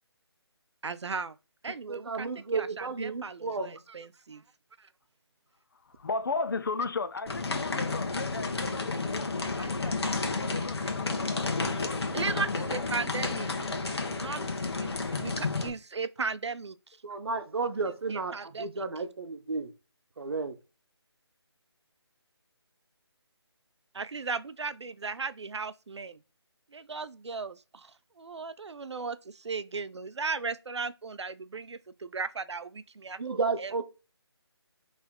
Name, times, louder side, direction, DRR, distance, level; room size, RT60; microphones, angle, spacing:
voice 1, 0.8-1.4 1.6-4.4 4.8-4.9 9.6-9.7 12.1-13.5 14.2-14.4 14.8-16.8 18.1-18.9 23.9-26.2 26.7-27.9 28.2-33.7, right 4 dB, 80° right, 0.5 m, -36 dB
voice 2, 1.9-3.7 17.0-19.7 20.2-20.5 33.2-33.8, right 4 dB, 60° right, 0.9 m, -32 dB
voice 3, 5.7-9.3 9.6-12.7, left 4 dB, 50° left, 0.6 m, -36 dB
sound 1, 7.3-15.7, left 3 dB, 65° left, 1.3 m, -31 dB
4.3 x 3.3 x 3.7 m
figure-of-eight pair, 160°, 14 cm